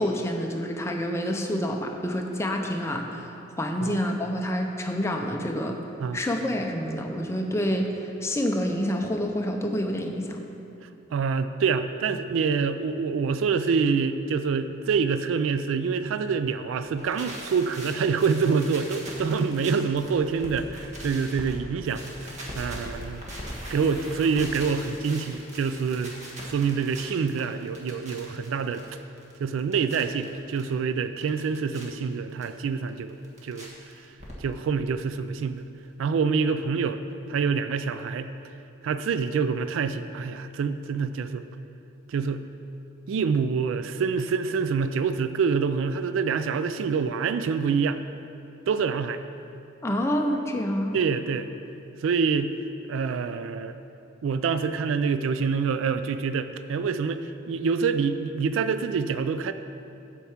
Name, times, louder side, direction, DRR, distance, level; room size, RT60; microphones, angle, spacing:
voice 1, 0.0-3.3 3.6-5.8 6.1-7.9 8.2-10.4 49.8-50.9, equal, 15° left, 2 dB, 0.5 m, -27 dB
voice 2, 11.1-23.2 23.7-26.1 26.4-28.8 29.4-33.2 33.4-33.7 34.4-35.6 36.0-37.0 37.3-38.3 38.8-41.4 42.1-42.4 43.1-48.0 48.7-49.2 50.9-51.5 52.0-52.5 52.9-53.8 54.2-59.5, right 5 dB, 85° right, 10 dB, 0.3 m, -26 dB
sound 1, 16.9-21.5 21.8-30.6 31.0-31.8 32.4-32.5 32.9-33.7 33.9-34.7 35.0-35.1 35.3-35.4 35.6-35.7, right 1 dB, 35° right, 1.3 m, -40 dB
7.9 x 4.5 x 7.2 m, 2.7 s
head